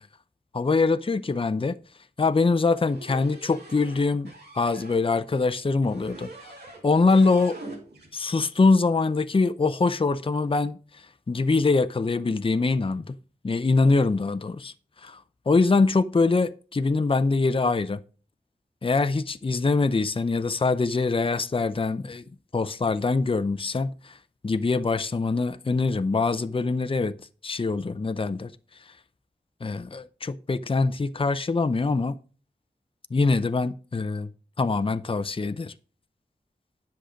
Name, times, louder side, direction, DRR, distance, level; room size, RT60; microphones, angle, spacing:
voice 1, 0.5-1.8 2.2-6.5 6.8-7.6 8.1-10.8 11.3-13.2 13.4-14.7 15.0-18.0 18.8-22.2 22.5-24.2 24.4-27.1 27.4-28.5 29.6-32.2 33.1-34.3 34.6-35.7, left 3 dB, 35° left, 0.6 m, -24 dB
sound 1, 2.8-5.0 5.9-6.8 7.1-8.1, right 2 dB, 85° right, 3.2 m, -43 dB
10.5 x 6.6 x 5.0 m
wide cardioid pair, 80°, 16 cm